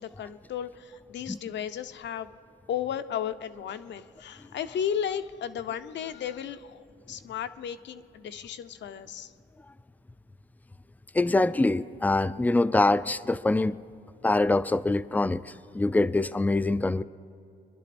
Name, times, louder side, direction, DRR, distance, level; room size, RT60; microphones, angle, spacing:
voice 1, 0.0-2.3 2.7-9.3, left 9 dB, 65° left, 11 dB, 0.7 m, -34 dB
voice 2, 11.1-13.8 14.2-17.0, left 2 dB, 10° left, 15 dB, 0.4 m, -24 dB
25.5 x 11.0 x 4.3 m, 2.7 s
cardioid pair, 90°, 20 cm